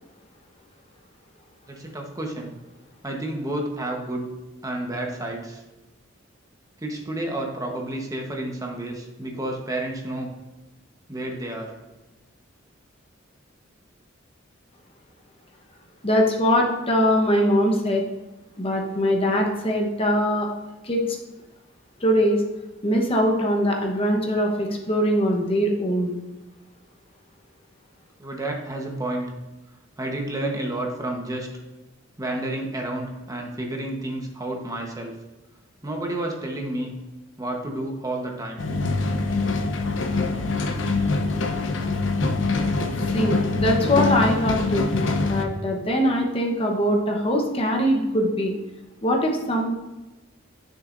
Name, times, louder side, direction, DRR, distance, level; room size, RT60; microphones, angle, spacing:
voice 1, 1.7-2.5 3.0-4.3 4.6-5.6 6.8-10.3 11.1-11.7 28.2-29.3 30.0-31.5 32.2-35.1 35.8-36.9 37.4-38.6, right 1 dB, 20° right, 1 dB, 1.1 m, -30 dB
voice 2, 16.0-18.0 18.6-20.5 20.8-21.2 22.0-22.4 22.8-26.1 43.0-45.0 45.3-48.5 49.0-49.7, equal, 30° left, 1 dB, 1.0 m, -22 dB
sound 1, 38.6-45.4, left 3 dB, 70° left, 0.8 m, -24 dB
9.2 x 6.7 x 2.6 m, 1.1 s
head